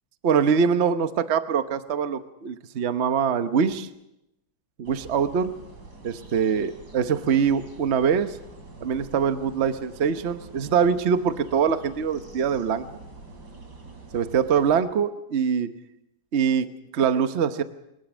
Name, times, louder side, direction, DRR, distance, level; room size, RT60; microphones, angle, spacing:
voice 1, 0.2-3.9 4.8-5.5 6.0-8.4 8.8-13.0 14.1-15.7 16.3-17.6, right 7 dB, 45° right, 10 dB, 1.1 m, -23 dB
sound 1, 4.8-14.8, right 2 dB, 75° right, 4.0 m, -45 dB
22.0 x 21.0 x 6.2 m, 0.88 s
omnidirectional pair, 1.8 m